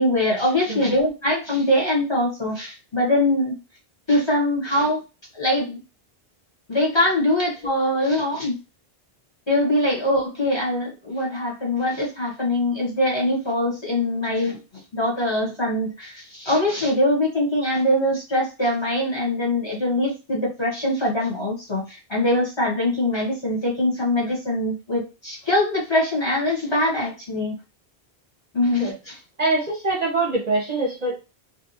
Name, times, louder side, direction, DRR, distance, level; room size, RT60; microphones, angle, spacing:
voice 1, 0.0-3.6 4.1-5.0 5.3-5.8 6.7-8.6 9.5-14.6 14.9-27.6 28.5-29.2, left 1 dB, 30° left, -3 dB, 0.9 m, -23 dB
voice 2, 0.7-1.0 28.8-28.9 29.4-31.1, right 2 dB, 45° right, -2 dB, 0.7 m, -24 dB
2.5 x 2.2 x 2.8 m, 0.30 s
omnidirectional pair, 1.0 m